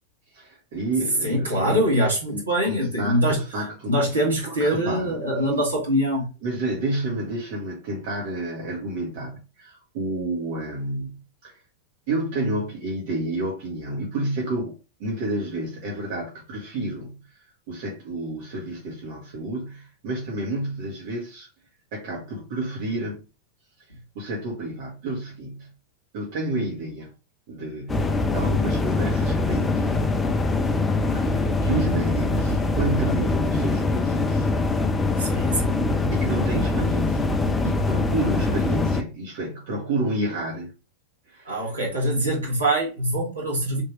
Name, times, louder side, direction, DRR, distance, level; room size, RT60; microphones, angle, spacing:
voice 1, 0.3-1.8 2.3-3.9 4.5-5.3 6.4-11.5 12.1-14.7 15.0-17.4 17.7-21.5 21.9-23.2 24.1-25.7 26.1-27.1 27.5-30.1 31.1-34.5 36.1-40.7 41.3-41.7, right 1 dB, 50° right, 1.3 m, -30 dB
voice 2, 1.2-3.4 3.9-6.3 35.2-35.9 41.5-43.8, equal, 80° right, 1.9 m, -23 dB
sound 1, 27.9-39.0, left 3 dB, 15° left, 0.4 m, -23 dB
3.5 x 2.9 x 3.1 m
figure-of-eight pair, 90°, 0 cm